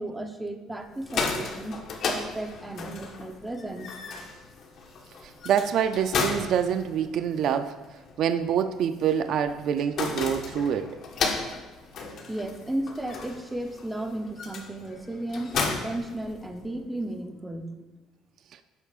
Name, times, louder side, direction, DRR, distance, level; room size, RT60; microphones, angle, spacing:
voice 1, 0.0-1.7 2.0-3.9 12.3-17.9, right 1 dB, 10° right, 5 dB, 0.6 m, -34 dB
sound 1, 0.9-16.8, left 4 dB, 45° left, 1.3 m, -35 dB
voice 2, 5.5-7.7 8.2-11.0, right 8 dB, 50° right, 9 dB, 0.4 m, -26 dB
16.5 x 8.2 x 2.4 m, 1.1 s
cardioid pair, 160°, 0 cm